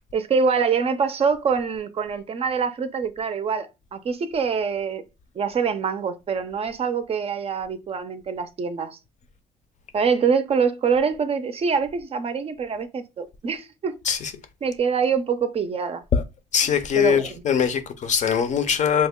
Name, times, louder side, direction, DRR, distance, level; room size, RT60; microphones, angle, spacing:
voice 1, 0.1-5.0 5.3-9.0 9.9-14.0 14.6-16.0 16.7-17.4, right 6 dB, 35° right, 0.5 m, -25 dB
voice 2, 16.5-19.1, left 7 dB, 45° left, 0.6 m, -21 dB
3.2 x 2.1 x 3.6 m
cardioid pair, 110°, 17 cm